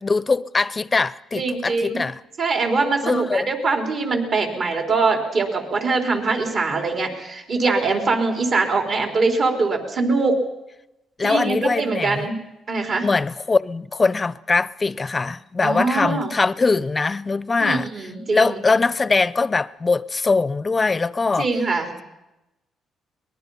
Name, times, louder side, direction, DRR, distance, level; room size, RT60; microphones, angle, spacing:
voice 1, 0.0-2.2 3.0-3.5 11.2-12.3 13.0-17.9 18.3-21.5, left 4 dB, 30° left, 0.6 m, -22 dB
voice 2, 1.3-2.0 2.4-10.4 11.2-12.4 12.7-13.1 15.6-16.3 17.6-18.6 21.4-21.9, right 3 dB, 55° right, 3.9 m, -22 dB
23.0 x 20.5 x 5.7 m
cardioid pair, 90°, 0 cm